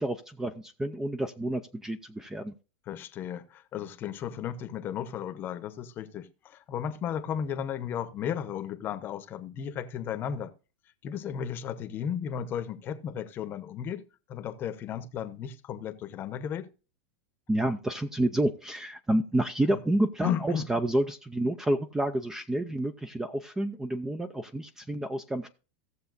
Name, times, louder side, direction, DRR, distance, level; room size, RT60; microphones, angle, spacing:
voice 1, 0.0-2.5 17.5-25.5, right 1 dB, 5° right, 0.5 m, -29 dB
voice 2, 2.9-10.5 11.0-14.0 14.3-16.7 19.7-19.8 20.2-20.7, left 8 dB, 30° left, 0.9 m, -34 dB
17.0 x 7.0 x 2.6 m
supercardioid pair, 140°, 7 cm